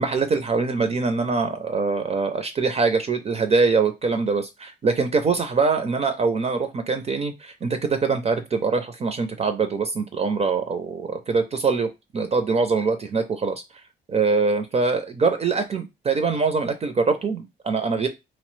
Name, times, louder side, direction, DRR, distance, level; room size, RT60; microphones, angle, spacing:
voice 1, 0.0-13.6 14.1-18.1, right 4 dB, 30° right, 8 dB, 0.4 m, -23 dB
2.8 x 2.0 x 3.1 m, 0.23 s
cardioid pair, 90°, 20 cm